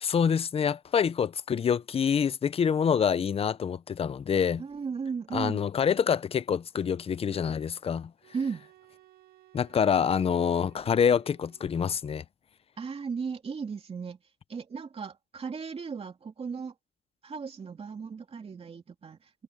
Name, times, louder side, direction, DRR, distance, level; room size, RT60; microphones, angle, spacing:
voice 1, 0.0-4.6 5.3-8.1 9.5-12.2, left 7 dB, 30° left, 0.6 m, -26 dB
voice 2, 4.6-5.6 8.3-8.7 12.8-14.2 14.5-16.7 17.2-19.3, right 5 dB, 30° right, 2.9 m, -36 dB
sound 1, 8.2-12.1, right 15 dB, 55° right, 2.2 m, -59 dB
cardioid pair, 135°, 19 cm